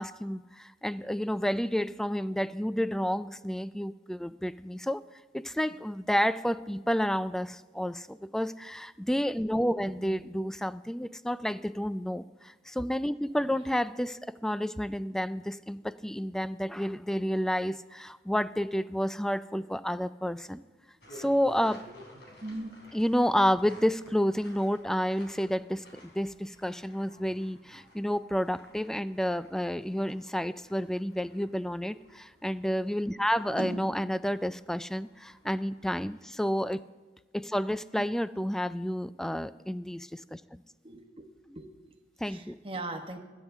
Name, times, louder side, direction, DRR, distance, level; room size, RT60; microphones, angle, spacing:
voice 1, 0.0-5.0 5.3-20.6 21.1-21.9 22.9-36.8 37.3-40.6 42.2-42.6, equal, 5° left, 15 dB, 0.3 m, -30 dB
voice 2, 9.9-10.3 13.5-13.6 22.4-22.7 31.9-32.0 33.6-34.0 40.8-41.2 41.5-43.2, right 2 dB, 30° right, 4 dB, 1.3 m, -40 dB
sound 1, 21.0-36.4, equal, 70° left, 3.3 m, -55 dB
21.0 x 9.5 x 3.5 m, 1.3 s
head